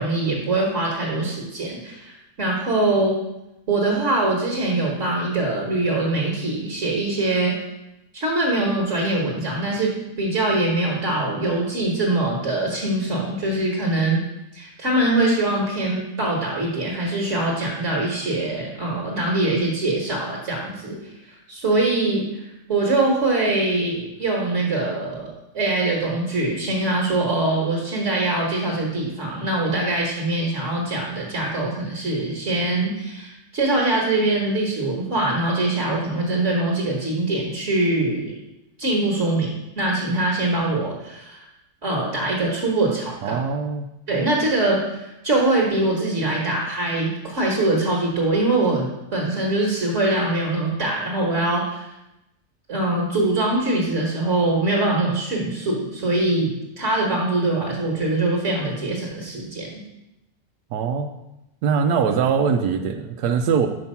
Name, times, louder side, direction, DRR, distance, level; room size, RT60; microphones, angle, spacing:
voice 1, 0.0-2.1 2.4-3.2 3.7-7.6 8.1-9.9 10.2-14.2 14.5-21.1 21.5-22.4 22.7-25.3 25.5-38.3 38.8-41.5 41.8-43.4 44.1-48.9 49.1-51.9 52.7-59.7, right 2 dB, 50° right, -2 dB, 1.6 m, -23 dB
voice 2, 43.2-43.9 60.7-61.1 61.6-63.7, right 6 dB, 90° right, 6 dB, 1.2 m, -22 dB
5.9 x 5.4 x 5.5 m, 0.91 s
omnidirectional pair, 1.7 m